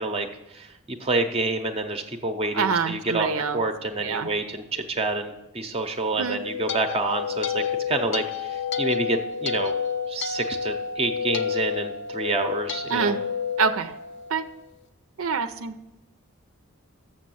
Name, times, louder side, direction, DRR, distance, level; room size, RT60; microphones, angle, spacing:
voice 1, 0.0-3.3 3.5-9.7 10.1-13.1, right 2 dB, 30° right, 5 dB, 0.7 m, -28 dB
voice 2, 2.5-3.6 4.0-4.3 6.2-6.4 12.9-13.2 13.6-13.9 14.3-14.4 15.2-15.8, right 5 dB, 80° right, 9 dB, 0.5 m, -25 dB
sound 1, 6.2-14.5, left 7 dB, 55° left, 0.6 m, -30 dB
7.5 x 6.4 x 7.6 m, 0.94 s
head